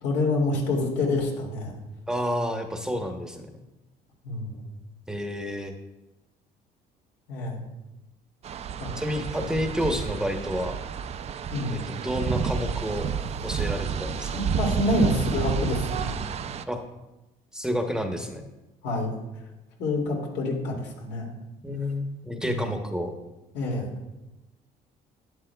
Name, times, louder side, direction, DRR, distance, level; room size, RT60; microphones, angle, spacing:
voice 1, 0.0-1.8 4.2-4.6 7.3-7.6 8.8-8.9 11.5-11.8 14.3-16.1 18.8-19.1 19.8-21.3 22.5-22.7 23.5-23.9, left 2 dB, 85° left, 0 dB, 2.4 m, -27 dB
voice 2, 2.1-3.5 5.1-5.7 9.0-10.8 11.7-13.1 13.4-14.3 16.7-16.8 17.5-18.4 21.6-23.1, equal, 5° right, 4 dB, 0.9 m, -29 dB
sound 1, 8.4-16.6, right 7 dB, 40° right, 0.4 m, -30 dB
12.0 x 10.0 x 2.3 m, 0.99 s
cardioid pair, 110°, 17 cm